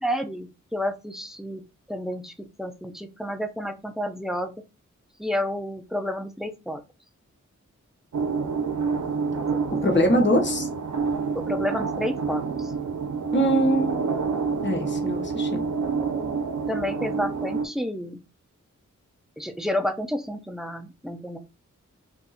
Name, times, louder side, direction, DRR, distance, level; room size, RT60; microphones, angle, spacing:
voice 1, 0.0-4.5 5.2-6.8 9.3-9.9 11.3-12.7 16.7-18.2 19.4-21.4, left 1 dB, ahead, 0.6 m, -30 dB
sound 1, 8.1-17.7, right 5 dB, 65° right, 0.7 m, -28 dB
voice 2, 9.8-10.7 13.3-14.0 14.6-15.6, equal, 35° left, 1.1 m, -22 dB
2.6 x 2.3 x 4.1 m
cardioid pair, 45°, 31 cm